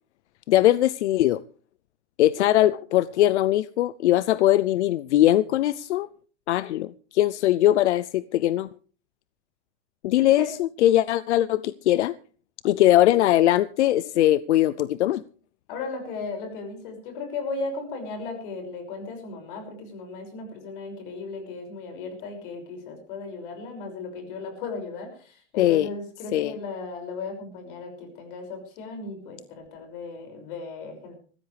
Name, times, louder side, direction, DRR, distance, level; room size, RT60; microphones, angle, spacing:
voice 1, 0.5-1.4 2.2-6.1 6.5-8.7 10.0-12.1 12.6-15.2 25.6-25.9 26.3-26.5, left 14 dB, 85° left, 18 dB, 0.6 m, -21 dB
voice 2, 10.2-10.5 15.7-31.1, left 3 dB, 50° left, 5 dB, 6.2 m, -36 dB
20.5 x 15.0 x 3.4 m, 0.39 s
supercardioid pair, 155°, 33 cm